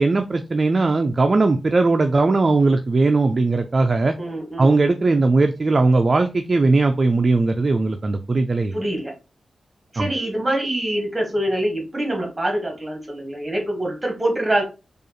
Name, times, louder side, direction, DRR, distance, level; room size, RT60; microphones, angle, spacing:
voice 1, 0.0-4.2 4.6-8.8 10.0-10.1, right 3 dB, 35° right, 6 dB, 0.3 m, -19 dB
voice 2, 4.2-4.7 8.7-9.1 9.9-14.6, right 1 dB, 20° right, 1 dB, 1.5 m, -24 dB
4.8 x 2.4 x 2.9 m, 0.30 s
wide cardioid pair, 125°, 0 cm